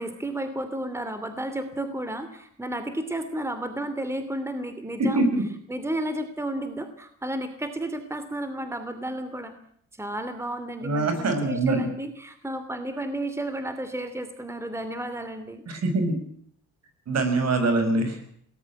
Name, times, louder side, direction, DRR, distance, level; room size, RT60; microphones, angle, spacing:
voice 1, 0.0-5.3 5.7-9.5 10.0-15.6, right 1 dB, 10° right, 10 dB, 2.8 m, -32 dB
voice 2, 5.0-5.4 10.8-11.8 15.7-16.2 17.1-18.2, right 2 dB, 60° right, 8 dB, 7.2 m, -23 dB
22.0 x 19.0 x 7.7 m, 0.64 s
cardioid pair, 90°, 30 cm